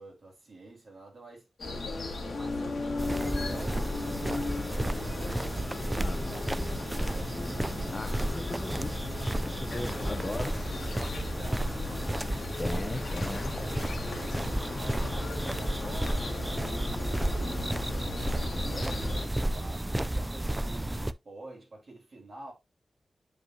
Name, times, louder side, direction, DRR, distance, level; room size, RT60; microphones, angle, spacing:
voice 1, 0.0-1.5 1.9-4.1 4.5-5.4 5.7-8.0 9.3-12.2 13.4-17.8 18.6-22.5, right 2 dB, 45° right, 3.5 m, -48 dB
sound 1, 1.6-19.3, left 3 dB, 60° left, 2.0 m, -37 dB
sound 2, 3.0-21.1, right 1 dB, 10° right, 0.3 m, -32 dB
voice 2, 6.0-6.3 7.9-9.0 9.4-10.5 12.6-13.5, left 2 dB, 25° left, 0.7 m, -37 dB
sound 3, 9.7-16.4, left 4 dB, 85° left, 1.1 m, -46 dB
8.0 x 5.0 x 2.7 m
wide cardioid pair, 160°, 0 cm